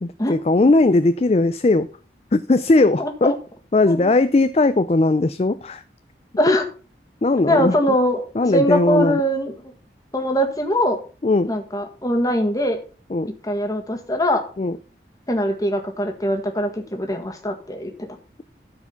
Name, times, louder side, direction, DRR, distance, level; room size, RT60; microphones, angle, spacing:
voice 1, 0.0-1.9 2.3-3.3 3.7-5.8 7.2-7.8 8.4-9.2 11.2-11.5 13.1-13.3 14.6-14.8, left 2 dB, 35° left, 12 dB, 0.4 m, -18 dB
voice 2, 3.0-3.3 3.9-4.1 6.4-6.6 7.5-8.2 8.5-9.5 10.1-11.0 11.5-12.8 13.3-14.4 15.3-18.1, equal, 20° left, 4 dB, 1.7 m, -22 dB
13.0 x 4.8 x 5.7 m, 0.37 s
head